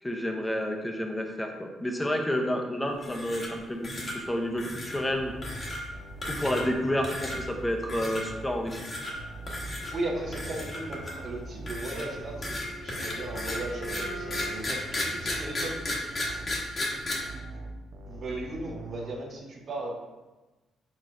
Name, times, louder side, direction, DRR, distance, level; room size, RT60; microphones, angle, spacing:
voice 1, 0.0-5.3 6.3-8.8, equal, 10° left, 3 dB, 0.6 m, -30 dB
sound 1, 3.0-3.6 3.8-4.2 4.6-5.0 5.4-5.8 6.2-6.8 7.0-7.4 7.9-8.2 8.7-9.1 9.5-9.9 10.3-11.3 11.7-17.1, left 1 dB, 35° left, 1.1 m, -34 dB
sound 2, 5.1-8.6 9.1-12.6 13.1-16.6 17.1-19.1, right 2 dB, 80° right, 0.6 m, -43 dB
voice 2, 9.9-16.0 16.9-17.1 17.3-17.6 18.1-20.0, right 2 dB, 55° right, -1 dB, 0.9 m, -37 dB
Bowed string instrument, 11.5-14.7, right 2 dB, 80° left, 1.4 m, -44 dB
4.3 x 4.1 x 2.5 m, 1.1 s
cardioid pair, 90°, 0 cm